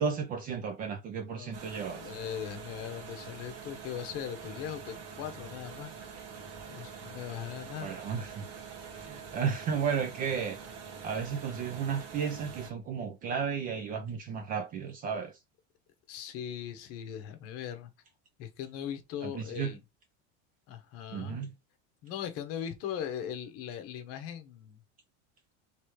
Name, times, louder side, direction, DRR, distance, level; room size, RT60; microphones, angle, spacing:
voice 1, 0.0-2.1 7.7-8.5 8.9-10.6 11.0-15.4 19.2-19.8 21.1-21.5, right 6 dB, 25° right, 0.4 m, -33 dB
sound 1, 1.5-12.7, right 6 dB, 45° right, 1.6 m, -45 dB
voice 2, 1.9-5.9 6.3-6.4 6.7-7.9 16.1-17.9 18.4-19.8 20.7-21.4 22.0-24.8, left 9 dB, 40° left, 1.0 m, -39 dB
3.3 x 3.1 x 4.7 m
supercardioid pair, 165°, 35 cm